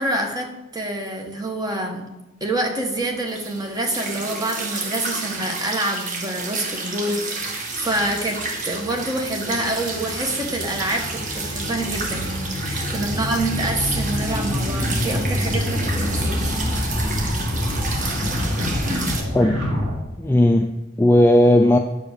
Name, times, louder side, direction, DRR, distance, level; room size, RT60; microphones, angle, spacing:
voice 1, 0.0-2.1 2.4-16.6, right 1 dB, 20° right, 2 dB, 1.3 m, -27 dB
sound 1, 3.3-19.2, right 3 dB, 40° right, 1.5 m, -31 dB
sound 2, 7.4-19.9, left 1 dB, 80° right, 3.1 m, -27 dB
voice 2, 20.2-21.8, left 1 dB, 10° left, 5 dB, 0.3 m, -16 dB
10.0 x 4.9 x 6.6 m, 0.99 s
head